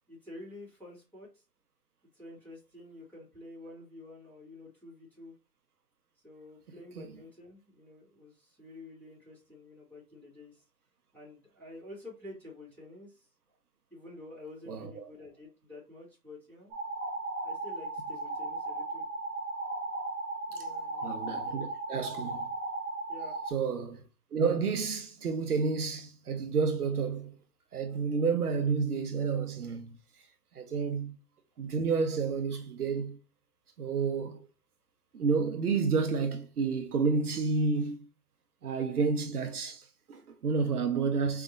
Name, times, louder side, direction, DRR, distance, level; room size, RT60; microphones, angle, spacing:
voice 1, 0.1-1.4 2.1-5.3 6.2-10.6 11.1-13.3 13.9-16.8 17.4-19.1 20.5-21.1 21.5-21.6 23.1-23.4, left 2 dB, 5° left, 1.7 m, -49 dB
voice 2, 14.7-15.1 20.5-20.7 21.0-22.5 23.5-24.0 24.3-27.3 27.7-30.0 30.5-31.1 31.6-33.2 33.8-34.5 35.1-38.1 38.6-41.4, right 5 dB, 60° right, 0.8 m, -30 dB
sound 1, 16.7-23.5, right 2 dB, 20° right, 1.5 m, -36 dB
4.9 x 3.4 x 2.5 m
hypercardioid pair, 160°, 50 cm